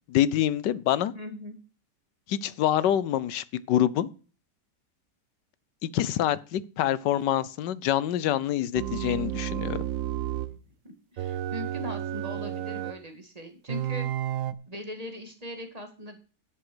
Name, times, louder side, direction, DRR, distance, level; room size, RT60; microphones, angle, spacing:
voice 1, 0.1-1.1 2.3-4.1 5.8-9.8, left 11 dB, 85° left, 1.4 m, -26 dB
voice 2, 1.1-1.6 10.5-10.6 10.8-14.1 14.7-16.2, left 1 dB, 20° right, 2.1 m, -40 dB
sound 1, 8.7-10.6 11.2-13.0 13.7-14.5, right 12 dB, 60° right, 1.0 m, -31 dB
10.5 x 8.0 x 6.2 m
omnidirectional pair, 1.8 m